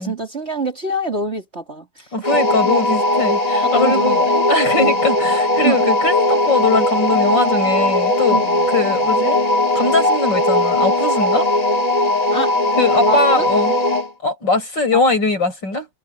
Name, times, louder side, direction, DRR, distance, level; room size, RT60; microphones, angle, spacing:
voice 1, 0.0-2.1 3.7-4.4 4.8-5.0 5.6-5.8 8.3-8.7 12.3-12.5 13.0-13.5 14.9-15.0, right 2 dB, 30° right, 3.4 m, -25 dB
voice 2, 2.1-8.4 8.7-11.5 12.8-13.8 14.2-15.9, left 3 dB, 60° left, 7.4 m, -20 dB
sound 1, 2.2-14.1, left 1 dB, 20° left, 1.8 m, -18 dB
omnidirectional pair, 2.2 m